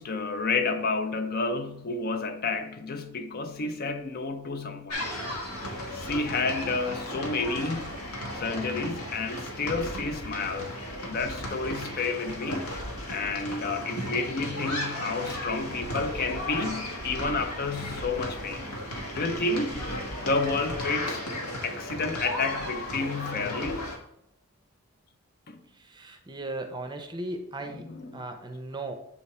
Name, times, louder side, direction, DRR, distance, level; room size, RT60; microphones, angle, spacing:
voice 1, 0.0-5.1 5.9-7.9 8.3-10.7 11.1-12.7 13.1-18.7 19.1-19.9 20.2-21.2 21.6-23.9 25.5-25.6 27.7-28.2, left 3 dB, 45° left, 0.5 m, -30 dB
sound 1, 4.9-24.0, left 1 dB, 80° left, 1.2 m, -35 dB
voice 2, 25.7-28.9, right 2 dB, 20° right, 0.6 m, -37 dB
7.2 x 3.5 x 4.1 m
head